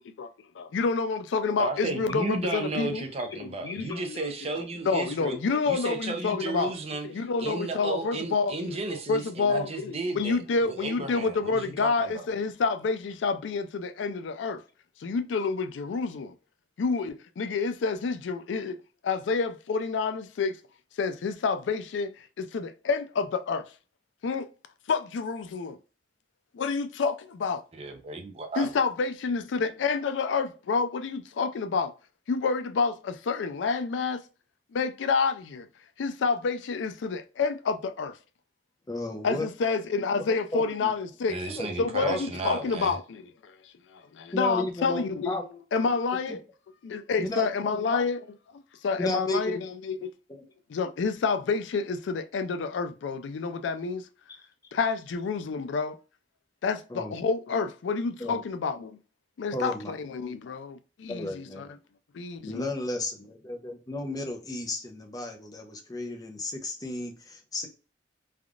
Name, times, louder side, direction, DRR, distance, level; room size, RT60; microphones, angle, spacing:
voice 1, 0.6-3.0 3.3-4.3 4.8-6.7 7.0-14.6 15.0-16.3 16.8-18.8 19.0-20.6 21.0-23.6 24.2-24.5 24.9-25.8 26.5-27.6 28.6-31.9 32.3-34.2 34.7-35.7 36.0-38.2 39.2-41.4 41.8-43.5 43.9-45.4 45.7-46.4 46.8-48.2 48.5-50.1 50.7-54.1 54.7-56.0 56.6-59.0 59.4-61.7 62.1-62.7, left 4 dB, 90° left, 0.4 m, -29 dB
voice 2, 1.6-5.4 5.7-7.1 7.4-12.2 27.7-28.7 41.3-42.9, right 3 dB, 35° right, 0.6 m, -33 dB
voice 3, 38.9-39.5 40.2-40.3 40.5-40.9 41.6-42.2 42.5-42.7 44.3-45.4 46.3-46.4 47.2-48.0 49.0-49.6 49.9-50.1 56.9-57.1 58.2-58.4 59.5-59.9 61.1-61.7 62.4-67.7, left 1 dB, 20° left, 0.6 m, -33 dB
3.4 x 2.3 x 2.4 m
head